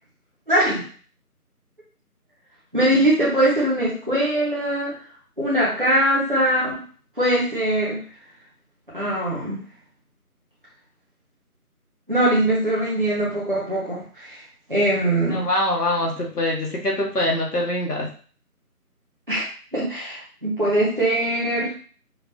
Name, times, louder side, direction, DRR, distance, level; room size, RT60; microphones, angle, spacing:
voice 1, 0.5-0.9 2.7-4.9 5.4-6.8 7.2-8.0 8.9-9.6 12.1-14.4 14.7-15.5 19.3-19.5 19.7-21.7, right 1 dB, 35° right, -7 dB, 0.9 m, -21 dB
voice 2, 15.3-18.1, left 1 dB, 85° left, -2 dB, 1.7 m, -24 dB
5.0 x 2.6 x 3.2 m, 0.42 s
figure-of-eight pair, 175°, 46 cm